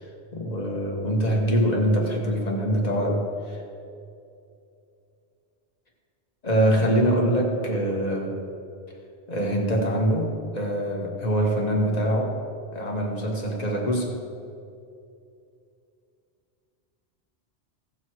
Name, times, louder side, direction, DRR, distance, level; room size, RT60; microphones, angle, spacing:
voice 1, 0.3-3.6 6.4-8.4 9.3-12.4 12.7-14.2, right 1 dB, 35° left, 0 dB, 1.7 m, -24 dB
16.5 x 6.9 x 4.7 m, 2.5 s
omnidirectional pair, 1.2 m